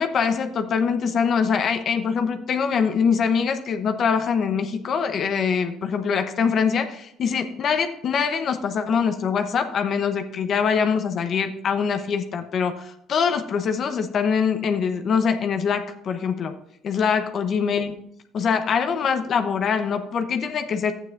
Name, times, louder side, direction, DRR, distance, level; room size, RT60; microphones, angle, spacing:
voice 1, 0.0-16.5 16.8-18.0 18.3-20.9, left 6 dB, 50° left, 7 dB, 0.9 m, -23 dB
12.0 x 9.1 x 2.6 m, 0.77 s
cardioid pair, 110°, 0 cm